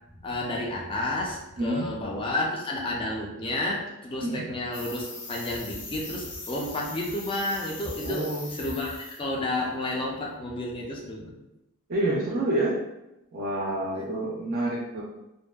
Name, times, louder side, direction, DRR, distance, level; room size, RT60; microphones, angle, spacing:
voice 1, 0.2-11.3, left 1 dB, 25° left, -1 dB, 0.4 m, -31 dB
voice 2, 1.6-1.9 4.2-4.5 8.0-8.5 11.9-12.8 13.3-15.0, right 1 dB, 45° right, -3 dB, 0.4 m, -28 dB
sound 1, 4.7-9.3 9.5-9.8, left 2 dB, 60° left, 0.7 m, -40 dB
2.5 x 2.2 x 2.2 m, 0.94 s
head